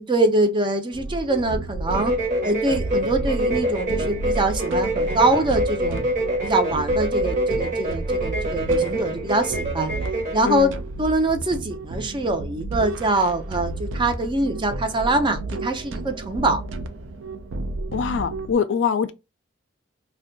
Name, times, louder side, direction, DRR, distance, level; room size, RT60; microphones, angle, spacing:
voice 1, 0.0-2.2 2.4-6.1 6.4-9.9 10.3-10.7 11.0-16.6, right 2 dB, 25° right, 0.5 m, -23 dB
sound 1, 0.9-18.5, right 2 dB, 75° right, 0.5 m, -32 dB
sound 2, 1.9-10.4, right 1 dB, 45° right, 0.9 m, -26 dB
voice 2, 17.9-19.1, left 6 dB, 65° left, 0.4 m, -23 dB
2.6 x 2.2 x 3.8 m
head